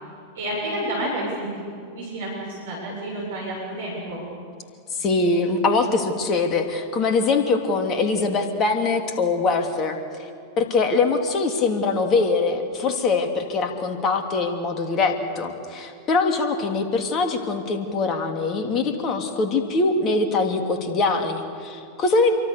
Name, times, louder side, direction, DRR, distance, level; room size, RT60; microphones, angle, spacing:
voice 1, 0.3-1.5 1.8-4.2, right 1 dB, 60° right, -3 dB, 7.5 m, -30 dB
voice 2, 5.0-10.0 10.6-22.3, left 3 dB, 30° left, 5 dB, 3.0 m, -23 dB
27.0 x 24.0 x 7.0 m, 2.4 s
figure-of-eight pair, 90°, 0 cm